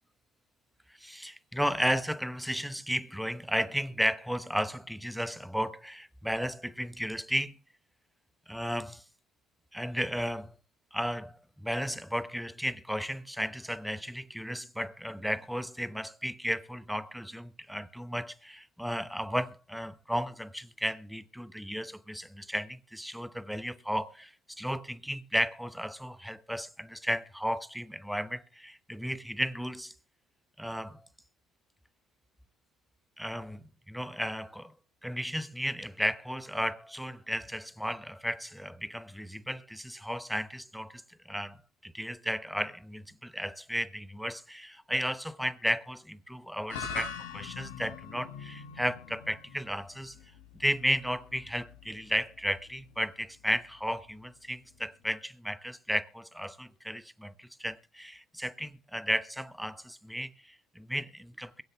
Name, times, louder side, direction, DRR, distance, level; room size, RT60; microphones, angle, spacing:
voice 1, 1.0-7.6 8.5-9.0 9.7-10.5 10.9-29.9 30.6-31.0 33.2-34.7 35.0-50.1 50.6-61.6, equal, ahead, 1.0 m, -34 dB
sound 1, 46.7-55.1, left 5 dB, 85° left, 3.7 m, -44 dB
23.0 x 7.8 x 3.5 m
hypercardioid pair, 70°, 0 cm